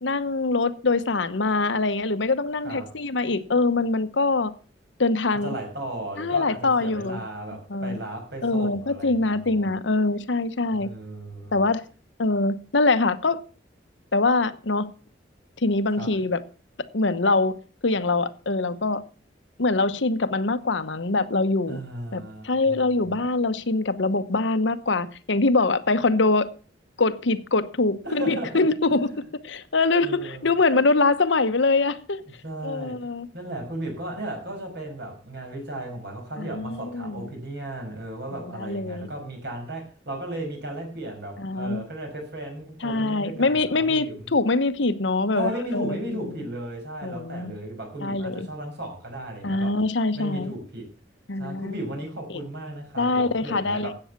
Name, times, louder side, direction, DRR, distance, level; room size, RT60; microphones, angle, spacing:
voice 1, 0.0-4.5 5.0-5.5 6.2-7.2 7.7-8.0 8.4-10.9 11.5-11.9 12.2-13.4 14.1-14.9 15.6-16.4 16.9-19.0 19.6-21.8 22.1-26.5 27.0-29.1 29.4-32.2 32.6-33.3 36.4-37.3 38.3-39.1 41.4-41.8 42.8-46.0 47.0-47.5 48.0-48.5 49.4-50.5 51.3-51.7 52.3-52.4 53.0-53.9, left 3 dB, 70° left, 1.0 m, -24 dB
voice 2, 2.6-3.0 5.4-9.7 10.8-11.6 16.0-16.1 21.7-23.2 28.0-28.7 29.1-29.2 30.0-30.5 32.4-44.3 45.3-49.8 50.1-50.9 51.4-53.9, right 1 dB, 60° right, 6.3 m, -35 dB
13.5 x 8.7 x 5.9 m
head